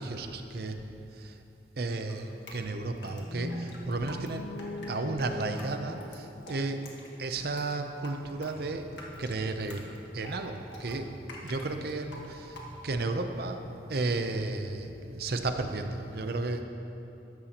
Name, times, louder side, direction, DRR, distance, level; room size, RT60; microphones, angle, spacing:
voice 1, 0.0-1.3 1.8-4.5 4.9-6.9 7.2-8.9 9.2-11.1 11.4-12.6 12.8-13.6 13.9-16.6, right 2 dB, 60° right, 7 dB, 0.7 m, -33 dB
Drip, 2.1-13.1, left 1 dB, 80° left, 1.7 m, -48 dB
sound 1, 3.0-7.2, left 1 dB, 55° left, 0.8 m, -41 dB
sound 2, 8.1-16.1, equal, ahead, 1.0 m, -50 dB
14.0 x 11.0 x 3.0 m, 2.9 s
head